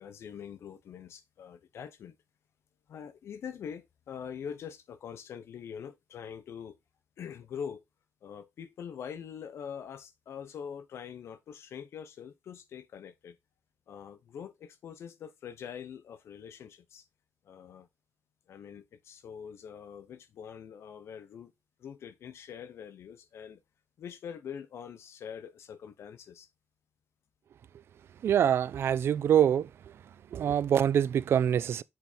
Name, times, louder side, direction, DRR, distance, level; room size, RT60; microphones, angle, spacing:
voice 1, 0.0-2.2 2.9-6.8 7.2-7.8 8.2-13.4 13.9-17.0 17.4-17.9 18.5-21.5 21.8-23.6 24.0-26.5, left 7 dB, 70° left, 1.0 m, -44 dB
voice 2, 28.2-29.7 30.3-31.8, right 9 dB, 60° right, 0.4 m, -25 dB
7.9 x 3.6 x 4.2 m
wide cardioid pair, 165°, 5 cm